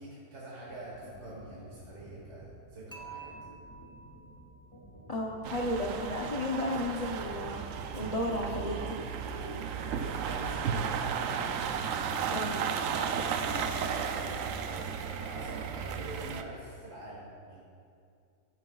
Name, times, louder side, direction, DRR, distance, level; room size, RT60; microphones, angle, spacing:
voice 1, 0.0-3.3 9.5-11.4 13.1-17.6, right 1 dB, 45° right, -6 dB, 1.6 m, -45 dB
sound 1, 0.7-15.4, left 1 dB, 20° left, 1.2 m, -52 dB
Dishes pots and pans / Chink clink, 2.9-5.0, right 5 dB, 5° left, 0.7 m, -49 dB
voice 2, 5.1-9.0 12.3-12.6, left 1 dB, 70° left, -1 dB, 0.3 m, -33 dB
sound 2, 5.4-16.4, right 7 dB, 70° right, 0.8 m, -34 dB
13.5 x 9.3 x 2.3 m, 2.4 s
omnidirectional pair, 1.7 m